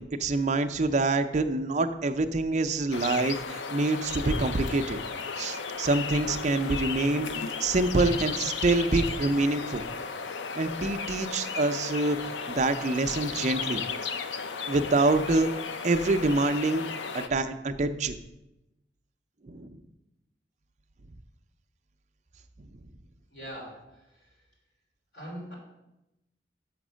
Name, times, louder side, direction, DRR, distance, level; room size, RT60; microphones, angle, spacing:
voice 1, 0.0-5.0 5.4-7.3 7.6-9.8 10.6-13.8 14.7-15.5 15.8-16.8 17.1-18.2 19.4-19.8, right 2 dB, 40° right, 8 dB, 0.5 m, -26 dB
sound 1, 2.9-17.3, left 5 dB, 75° left, 0.5 m, -35 dB
voice 2, 23.3-24.4 25.1-25.5, equal, 60° left, -3 dB, 3.3 m, -42 dB
6.3 x 5.8 x 6.2 m, 0.92 s
head